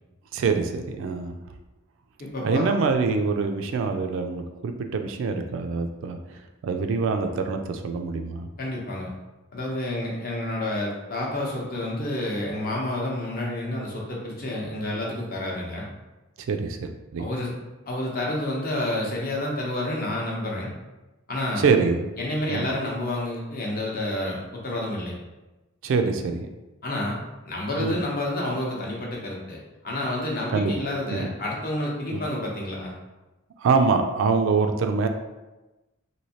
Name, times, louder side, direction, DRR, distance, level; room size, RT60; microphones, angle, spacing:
voice 1, 0.3-1.4 2.4-6.2 6.6-8.5 16.5-17.3 21.6-22.1 22.5-22.7 25.8-26.5 27.8-28.0 30.5-30.7 31.1-31.3 32.1-32.2 33.6-35.1, right 4 dB, 60° right, 6 dB, 0.3 m, -24 dB
voice 2, 2.2-2.7 8.6-9.1 9.5-15.9 17.2-17.5 17.9-20.7 21.3-21.7 22.2-25.2 26.8-27.2 27.4-32.9, left 1 dB, 45° left, -3 dB, 0.7 m, -29 dB
3.1 x 2.7 x 2.8 m, 1.1 s
head